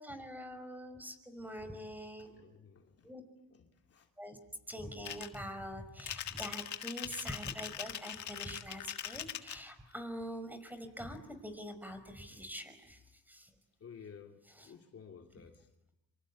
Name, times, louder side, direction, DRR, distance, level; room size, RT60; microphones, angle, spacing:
voice 1, 0.0-2.3 3.0-3.2 4.2-4.4 4.7-13.0 13.3-13.5 14.6-14.7, equal, 5° right, 9 dB, 5.3 m, -44 dB
voice 2, 1.4-3.1 3.5-4.1 6.3-6.6 13.8-15.7, left 6 dB, 50° left, 3 dB, 2.9 m, -55 dB
sound 1, 5.0-5.4 6.0-9.6, left 10 dB, 70° left, 1.7 m, -41 dB
26.0 x 26.0 x 8.6 m, 0.93 s
cardioid pair, 90°, 30 cm